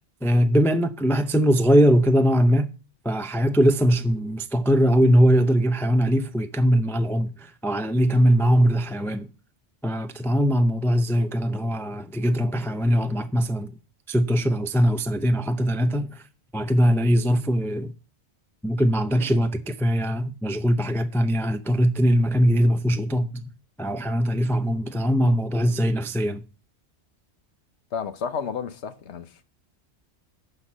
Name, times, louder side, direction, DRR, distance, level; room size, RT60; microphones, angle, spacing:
voice 1, 0.2-2.7 3.0-9.3 9.8-13.7 14.1-16.2 16.5-17.9 18.6-23.4 23.8-26.4, equal, 5° left, 0.4 m, -21 dB
voice 2, 27.9-29.4, left 6 dB, 75° left, 1.2 m, -31 dB
11.5 x 4.5 x 7.4 m
omnidirectional pair, 1.1 m